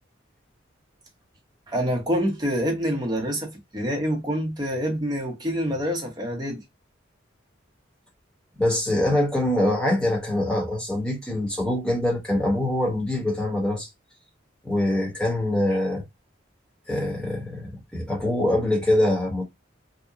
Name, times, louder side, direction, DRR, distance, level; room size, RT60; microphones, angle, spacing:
voice 1, 1.7-6.6, equal, 20° right, 0.8 m, -26 dB
voice 2, 8.5-13.9 14.6-16.0 16.9-19.4, left 1 dB, 5° left, 1.0 m, -24 dB
2.8 x 2.2 x 2.3 m
head